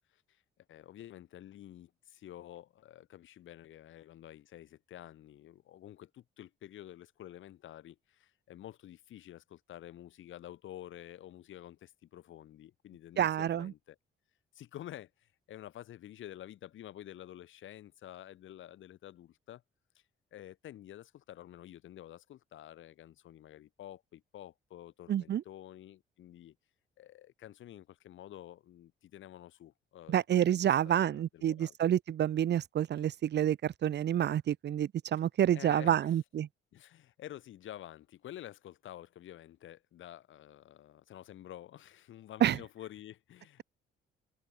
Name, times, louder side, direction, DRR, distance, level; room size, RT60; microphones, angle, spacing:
voice 1, 0.7-14.0 14.5-19.6 20.3-26.6 27.0-31.8 35.5-36.2 36.7-43.6, left 12 dB, 75° left, 6.3 m, -50 dB
voice 2, 13.2-13.7 25.1-25.4 30.1-36.5 42.4-42.6, right 10 dB, 60° right, 1.0 m, -28 dB
cardioid pair, 90°, 20 cm